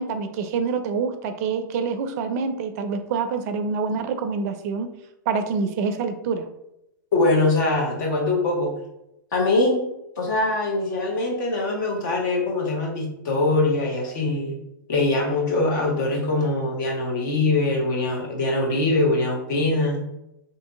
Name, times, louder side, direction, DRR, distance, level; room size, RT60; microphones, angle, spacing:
voice 1, 0.0-4.9 5.3-6.5, right 5 dB, 45° right, 8 dB, 0.4 m, -26 dB
voice 2, 7.1-8.7 9.3-9.8 10.2-14.6 14.9-20.0, left 2 dB, 55° left, -1 dB, 1.2 m, -22 dB
2.8 x 2.6 x 3.6 m, 0.86 s
hypercardioid pair, 110°, 12 cm